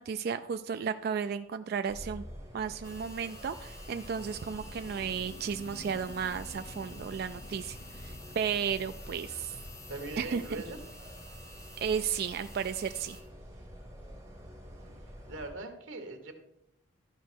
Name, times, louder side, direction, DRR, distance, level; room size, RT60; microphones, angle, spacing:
voice 1, 0.0-2.2 2.5-9.5 10.2-10.4 11.8-13.2, right 7 dB, 55° right, 9 dB, 0.3 m, -34 dB
sound 1, 1.9-15.5, equal, 15° right, 3.8 m, -48 dB
sound 2, 2.8-13.2, left 2 dB, 15° left, 1.3 m, -51 dB
sound 3, 4.0-10.4, left 2 dB, 70° left, 0.9 m, -52 dB
voice 2, 9.9-10.8 14.8-14.9 15.3-16.3, right 2 dB, 85° right, 6 dB, 1.4 m, -41 dB
13.0 x 5.1 x 4.5 m, 0.83 s
head